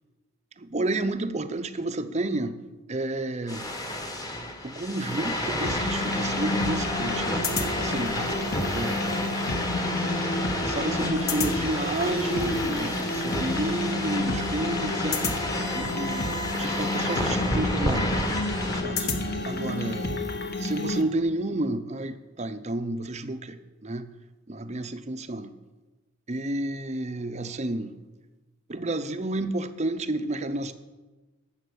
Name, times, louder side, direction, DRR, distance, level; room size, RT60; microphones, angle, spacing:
voice 1, 0.6-2.6 2.9-3.7 4.6-8.2 8.7-9.3 10.6-16.3 16.6-18.4 18.7-20.1 20.6-24.1 24.5-25.5 26.3-27.9 28.7-30.7, right 2 dB, 30° right, 10 dB, 0.6 m, -31 dB
sound 1, 3.5-18.8, left 1 dB, 15° left, 1.3 m, -31 dB
sound 2, 5.6-21.0, left 2 dB, 45° left, 1.2 m, -30 dB
11.5 x 7.3 x 8.3 m, 1.2 s
head